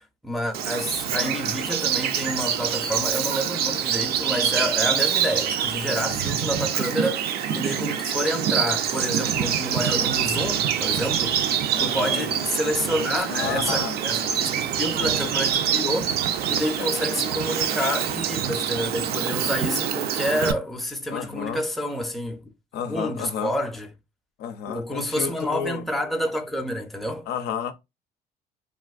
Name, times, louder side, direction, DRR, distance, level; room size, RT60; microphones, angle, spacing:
voice 1, 0.0-16.1 16.5-22.5 22.9-23.9 24.7-27.3, equal, ahead, 0.5 m, -29 dB
Bird vocalization bird call bird song, 0.5-20.5, right 9 dB, 70° right, 0.5 m, -25 dB
voice 2, 1.1-1.6 11.7-12.3 13.3-14.0 15.0-15.4 16.8-17.1 21.1-21.7 22.7-23.5 24.4-25.8 27.3-27.7, left 8 dB, 75° left, 0.5 m, -32 dB
3.5 x 2.5 x 2.3 m
cardioid pair, 110°, 17 cm